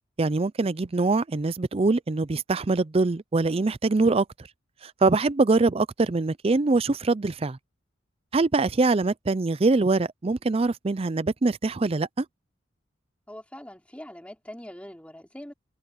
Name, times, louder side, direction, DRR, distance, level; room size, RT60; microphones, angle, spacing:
voice 1, 0.2-4.3 4.8-7.6 8.3-12.3, right 3 dB, 30° right, 0.5 m, -23 dB
voice 2, 13.3-15.5, left 1 dB, 5° left, 3.5 m, -42 dB
head